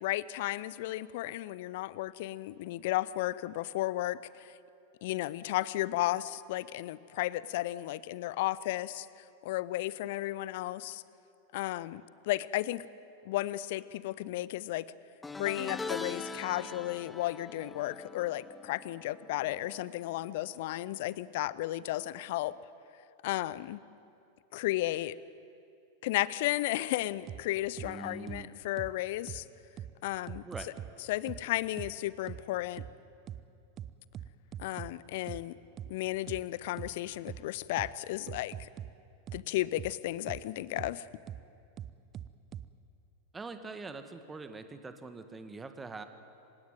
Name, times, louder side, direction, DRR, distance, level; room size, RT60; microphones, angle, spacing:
voice 1, 0.0-4.5 5.0-11.0 11.5-12.9 13.2-14.9 15.4-22.5 23.2-23.8 24.5-25.2 26.0-29.4 30.0-30.4 31.1-32.8 34.6-35.6 35.9-38.7 39.3-41.1, left 16 dB, 50° left, 19 dB, 0.7 m, -34 dB
sound 1, 15.2-20.6 20.9-21.3 22.5-22.6, left 3 dB, 10° left, 0.9 m, -43 dB
sound 2, 27.3-27.4 27.8-27.9 28.3-28.4 28.8-28.9 29.3-29.4 29.8-29.9 30.3-30.9 31.3-31.4 31.8-31.9 32.3-32.4 32.8-32.9 33.3-33.4 33.8-34.9 35.3-35.4 35.8-35.9 36.3-36.4 36.8-36.9 37.3-37.4 37.8-37.9 38.3-38.9 39.3-39.4 39.8-39.9 40.3-40.4 40.8-40.9 41.3-41.4 41.8-42.7, right 10 dB, 30° right, 0.7 m, -41 dB
voice 2, 27.8-28.5 30.4-30.7 43.3-46.0, right 3 dB, 15° right, 8 dB, 1.8 m, -43 dB
27.5 x 17.0 x 9.3 m, 2.6 s
figure-of-eight pair, 90°, 0 cm